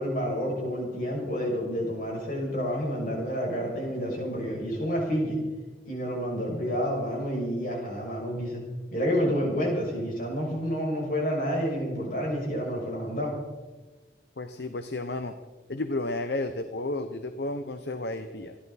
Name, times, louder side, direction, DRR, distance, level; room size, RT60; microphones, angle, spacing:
voice 1, 0.0-5.3 5.8-8.6 8.9-13.3, equal, 50° left, -2 dB, 6.4 m, -29 dB
voice 2, 14.4-15.3 15.7-18.6, left 2 dB, 65° left, 9 dB, 0.9 m, -32 dB
27.5 x 11.5 x 4.2 m, 1.2 s
head